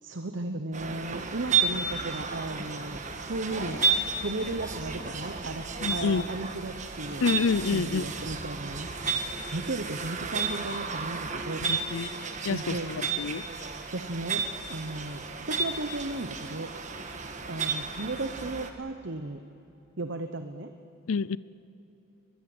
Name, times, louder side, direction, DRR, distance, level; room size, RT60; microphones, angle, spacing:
voice 1, 0.0-3.8 4.2-5.6 5.9-7.3 7.7-8.9 9.5-11.6 12.5-13.1 13.9-16.7 17.4-19.4 20.0-20.7, right 2 dB, 55° right, 7 dB, 1.0 m, -35 dB
sound 1, 0.7-18.7, right 5 dB, 35° right, 1.5 m, -32 dB
sound 2, 3.5-8.2, left 1 dB, 45° left, 3.9 m, -48 dB
voice 2, 5.8-6.2 7.2-8.1 11.6-12.1 12.4-13.4 21.1-21.4, left 5 dB, 75° left, 20 dB, 0.5 m, -28 dB
22.5 x 21.0 x 7.9 m, 2.9 s
head